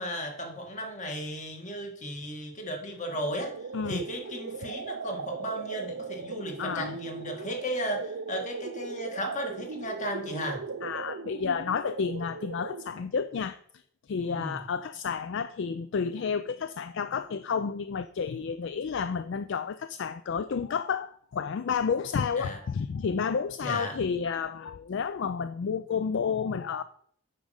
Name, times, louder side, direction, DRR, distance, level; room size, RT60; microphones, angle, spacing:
voice 1, 0.0-3.5 3.9-10.6 14.3-14.6 22.4-22.6 23.6-24.0, equal, 35° left, 1.7 m, -35 dB
sound 1, 3.1-13.1, right 5 dB, 60° right, 0.5 m, -38 dB
voice 2, 6.6-7.0 10.8-13.6 14.1-26.8, left 6 dB, 55° left, 0.3 m, -31 dB
8.5 x 5.2 x 6.4 m
head